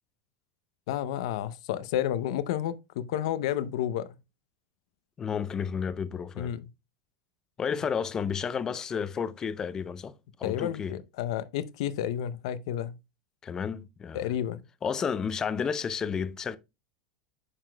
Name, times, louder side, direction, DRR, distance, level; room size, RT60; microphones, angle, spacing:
voice 1, 0.9-4.1 6.4-6.6 10.4-13.0 14.1-14.6, left 11 dB, 70° left, 0.6 m, -31 dB
voice 2, 5.2-6.5 7.6-11.0 13.4-14.3 14.8-16.6, left 6 dB, 20° left, 0.5 m, -31 dB
9.6 x 5.8 x 2.2 m
supercardioid pair, 145°, 3 cm